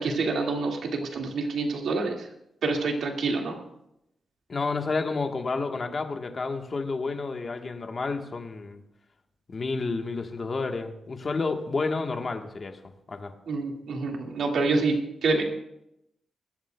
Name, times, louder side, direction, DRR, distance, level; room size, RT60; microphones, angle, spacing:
voice 1, 0.0-2.3 2.6-3.6 13.5-15.0 15.2-15.5, right 3 dB, 70° right, 2 dB, 1.9 m, -27 dB
voice 2, 4.5-8.8 9.5-12.8 13.1-13.3, left 3 dB, 30° left, 4 dB, 1.2 m, -30 dB
22.5 x 14.0 x 2.2 m, 0.82 s
wide cardioid pair, 170°, 0 cm